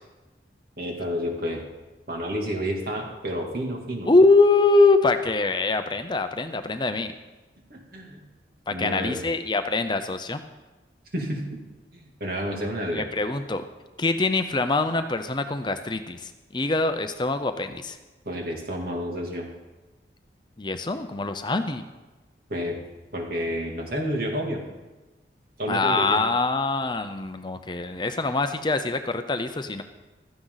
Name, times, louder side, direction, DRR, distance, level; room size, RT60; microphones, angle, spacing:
voice 1, 0.8-1.6 2.1-4.1 7.7-8.2 8.7-9.2 11.1-11.6 11.9-13.1 18.2-19.5 22.5-22.8 23.1-24.6 25.6-26.2, equal, 55° right, 0 dB, 2.8 m, -30 dB
voice 2, 4.1-7.1 8.7-10.4 12.9-13.7 14.0-18.0 20.6-21.8 25.7-29.8, left 3 dB, 25° left, 8 dB, 0.6 m, -23 dB
16.0 x 13.5 x 4.0 m, 1.1 s
head